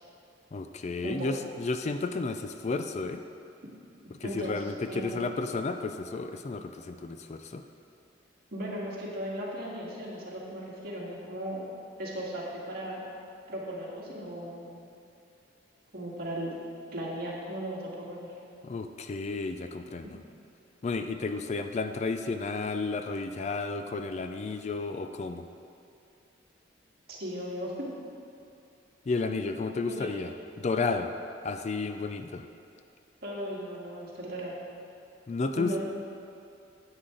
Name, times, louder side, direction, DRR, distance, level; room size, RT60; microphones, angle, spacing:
voice 1, 0.5-3.2 4.2-7.6 18.6-20.1 20.8-25.5 29.1-30.3 30.6-31.1 31.4-32.4 35.3-35.8, left 3 dB, 35° left, 8 dB, 0.4 m, -32 dB
voice 2, 4.2-5.3 8.5-11.7 12.0-13.1 13.5-14.7 15.9-16.5 16.9-18.3 27.1-27.9 29.9-30.2 33.2-34.5 35.5-35.8, equal, 55° right, -4 dB, 1.9 m, -37 dB
9.8 x 8.0 x 3.8 m, 2.7 s
head